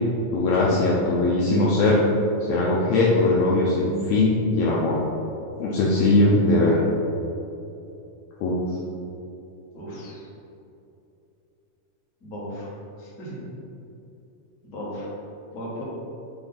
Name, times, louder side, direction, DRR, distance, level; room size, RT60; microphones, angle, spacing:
voice 1, 0.3-2.0 2.5-5.0 5.6-6.8 8.4-8.5, left 2 dB, 90° left, -5 dB, 1.6 m, -20 dB
voice 2, 9.7-10.3 12.2-12.7 13.0-13.4 14.6-15.1 15.5-15.8, equal, 50° left, -7 dB, 1.0 m, -36 dB
8.3 x 3.5 x 3.9 m, 2.8 s
omnidirectional pair, 4.2 m